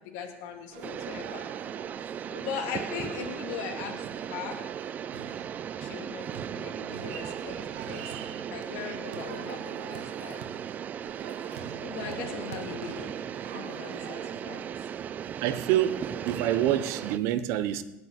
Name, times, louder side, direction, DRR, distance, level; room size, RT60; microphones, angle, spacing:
voice 1, 0.0-1.4 2.3-4.6 5.8-8.1 8.5-10.4 11.5-13.1 13.5-14.6, left 7 dB, 70° left, 2 dB, 2.5 m, -39 dB
sound 1, 0.7-17.2, right 8 dB, 85° right, 1.5 m, -46 dB
sound 2, 0.8-17.2, right 8 dB, 30° right, 0.4 m, -37 dB
voice 2, 15.4-16.0 16.2-17.8, right 12 dB, 60° right, 13 dB, 1.1 m, -26 dB
20.5 x 6.9 x 8.4 m, 1.0 s
cardioid pair, 140°, 5 cm